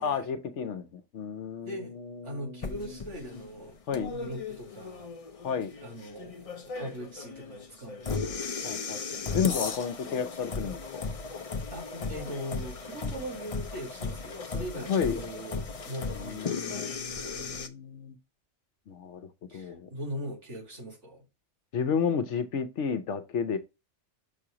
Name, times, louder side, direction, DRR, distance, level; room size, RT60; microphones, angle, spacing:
voice 1, 0.0-2.8 3.9-4.1 5.4-5.7 8.6-11.1 14.9-15.2 16.1-18.2 18.9-19.9 21.7-23.6, left 6 dB, 75° left, 1.0 m, -32 dB
voice 2, 2.2-3.8 4.1-5.1 5.8-8.5 11.7-17.3 19.5-21.2, equal, 70° right, 2.6 m, -41 dB
sound 1, 2.6-17.7, left 4 dB, 40° left, 0.6 m, -36 dB
6.9 x 2.9 x 4.9 m
omnidirectional pair, 1.2 m